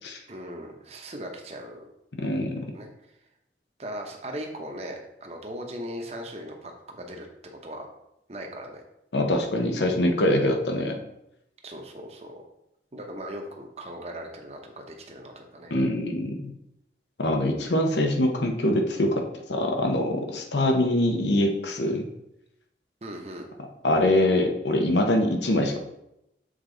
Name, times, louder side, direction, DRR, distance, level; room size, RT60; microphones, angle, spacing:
voice 1, 0.3-1.9 2.7-2.9 3.8-7.3 7.6-7.9 8.3-8.8 11.6-12.4 12.9-15.7 23.0-23.5, equal, 35° right, 2 dB, 0.8 m, -38 dB
voice 2, 2.2-2.7 9.1-11.0 15.7-16.5 17.2-19.2 19.5-22.1 23.8-25.8, left 1 dB, 85° left, 3 dB, 1.0 m, -24 dB
6.5 x 4.4 x 3.9 m, 0.84 s
head